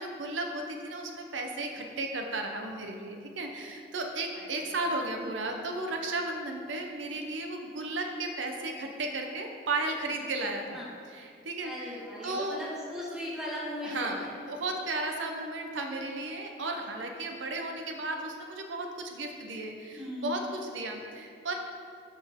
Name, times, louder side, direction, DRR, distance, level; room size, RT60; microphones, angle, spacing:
voice 1, 0.0-10.8 11.1-11.7 12.2-12.6 13.8-21.5, right 2 dB, 85° right, 3 dB, 0.7 m, -34 dB
voice 2, 4.3-4.8 5.4-5.5 10.7-11.0 11.6-14.3 20.0-20.4, left 1 dB, 5° right, -6 dB, 1.3 m, -38 dB
13.0 x 4.3 x 3.5 m, 2.3 s
head